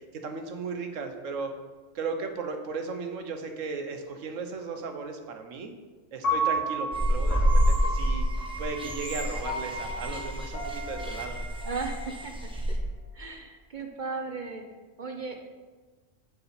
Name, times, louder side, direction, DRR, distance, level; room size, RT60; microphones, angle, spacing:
voice 1, 0.1-1.5 1.9-5.7 6.1-8.3 8.6-11.4, right 4 dB, 80° right, 5 dB, 1.3 m, -36 dB
Piano, 6.2-12.4, right 1 dB, 70° left, 2.3 m, -33 dB
sound 1, 6.9-12.8, equal, 5° right, 1.0 m, -28 dB
voice 2, 11.6-12.8 13.1-14.6 15.0-15.4, right 4 dB, 45° right, 3 dB, 0.8 m, -36 dB
8.7 x 6.9 x 4.2 m, 1.3 s
omnidirectional pair, 1.3 m